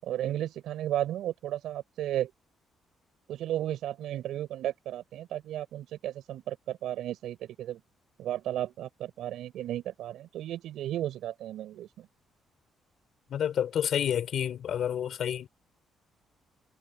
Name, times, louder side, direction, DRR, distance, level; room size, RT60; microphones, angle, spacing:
voice 1, 0.0-2.3 3.3-7.8 8.2-12.1, right 12 dB, 80° right, 7.5 m, -34 dB
voice 2, 13.3-15.5, left 9 dB, 65° left, 5.6 m, -29 dB
cardioid pair, 90°, 0 cm